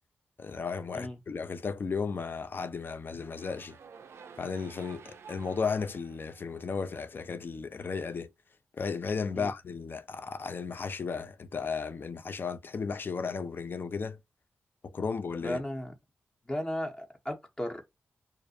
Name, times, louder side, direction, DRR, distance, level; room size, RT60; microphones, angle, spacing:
voice 1, 0.4-3.8 4.4-8.3 8.7-14.2 14.8-15.6, left 5 dB, 50° left, 0.3 m, -34 dB
sound 1, 3.1-7.3, right 6 dB, 70° right, 0.4 m, -52 dB
voice 2, 15.4-15.9 16.5-17.8, left 1 dB, 20° left, 0.7 m, -35 dB
2.4 x 2.0 x 2.6 m
cardioid pair, 50°, 5 cm